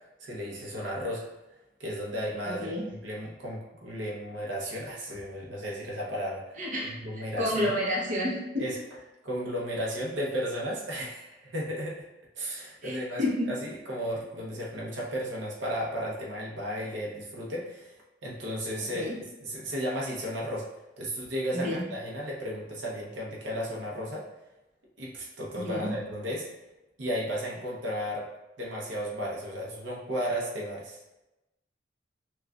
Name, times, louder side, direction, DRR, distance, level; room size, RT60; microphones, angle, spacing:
voice 1, 0.2-1.3 1.8-6.4 6.8-7.7 8.6-8.8 9.2-12.0 12.4-17.9 18.2-19.1 19.4-20.7 21.0-24.3 25.0-26.5 27.0-28.3 28.6-31.0, equal, 80° right, -3 dB, 0.8 m, -34 dB
voice 2, 2.4-2.8 6.6-8.7 12.8-13.6 18.8-19.2 21.5-21.8 25.5-25.9, left 1 dB, 45° right, -3 dB, 0.8 m, -30 dB
5.9 x 2.4 x 2.3 m, 0.99 s
head